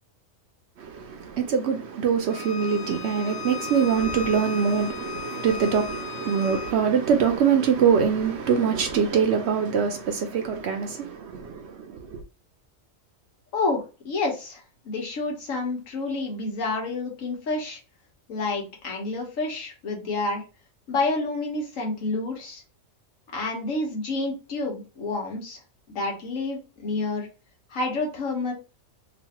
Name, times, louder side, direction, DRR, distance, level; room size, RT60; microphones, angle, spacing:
voice 1, 0.8-12.2, right 7 dB, 65° right, 0.8 m, -24 dB
Bowed string instrument, 2.3-6.8, left 9 dB, 60° left, 0.6 m, -37 dB
voice 2, 13.5-17.8 18.3-20.4 20.9-22.6 23.3-25.6 25.9-27.3 27.7-28.5, left 3 dB, 80° left, 1.4 m, -29 dB
3.0 x 2.5 x 2.8 m
omnidirectional pair, 1.4 m